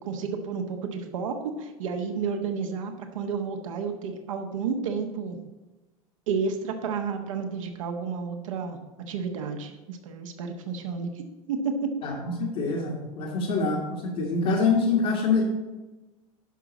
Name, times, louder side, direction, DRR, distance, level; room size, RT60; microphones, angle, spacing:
voice 1, 0.0-5.4 6.3-8.8 9.1-11.2 11.5-11.9, right 5 dB, 65° right, 4 dB, 1.3 m, -31 dB
voice 2, 12.0-15.4, left 4 dB, 55° left, -5 dB, 1.8 m, -25 dB
11.0 x 6.0 x 4.1 m, 1.1 s
figure-of-eight pair, 80°, 18 cm